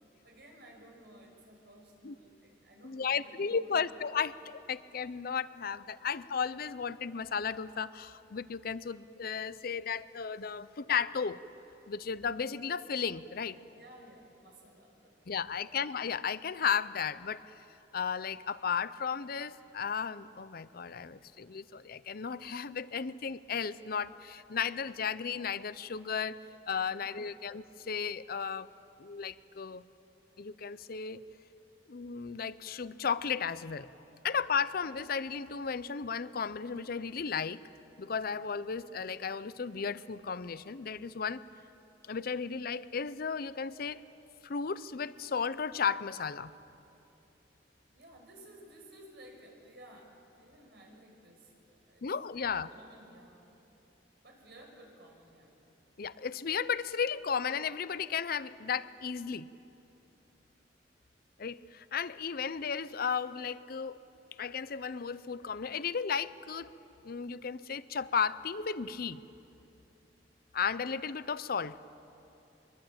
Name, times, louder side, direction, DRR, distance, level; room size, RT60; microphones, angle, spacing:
voice 1, 0.2-3.8 13.7-15.3 15.6-15.7 26.9-27.3 47.9-52.1 52.4-53.6 54.2-55.5, right 1 dB, 65° right, 1 dB, 5.8 m, -55 dB
voice 2, 2.8-11.4 11.9-13.6 15.3-17.4 17.9-26.4 26.7-28.7 29.0-29.8 30.4-31.2 31.9-33.9 34.2-37.6 38.0-41.4 42.1-44.0 44.4-46.5 52.0-52.7 56.0-59.5 61.4-64.0 64.4-66.7 67.0-69.2 70.5-71.8, left 6 dB, 55° left, 16 dB, 0.6 m, -34 dB
23.0 x 23.0 x 8.7 m, 2.9 s
head